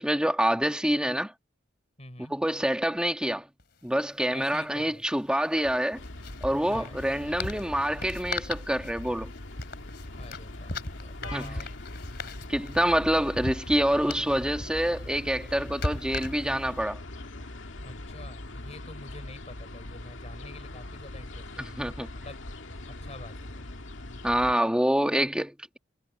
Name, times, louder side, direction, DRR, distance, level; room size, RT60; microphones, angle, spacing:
voice 1, 0.0-1.3 2.3-3.5 3.8-6.0 6.4-9.3 11.3-11.7 12.5-17.0 21.6-22.1 24.2-25.8, equal, 5° right, 1.9 m, -26 dB
voice 2, 2.0-2.3 4.3-5.0 6.7-7.0 10.2-11.7 17.8-21.8 22.1-22.4 23.0-23.6 24.0-24.2, left 1 dB, 35° left, 5.9 m, -47 dB
sound 1, 3.6-3.7 3.9-4.1 5.5-16.8, left 2 dB, 55° left, 3.3 m, -39 dB
sound 2, 5.9-24.5, left 1 dB, 80° left, 2.0 m, -41 dB
head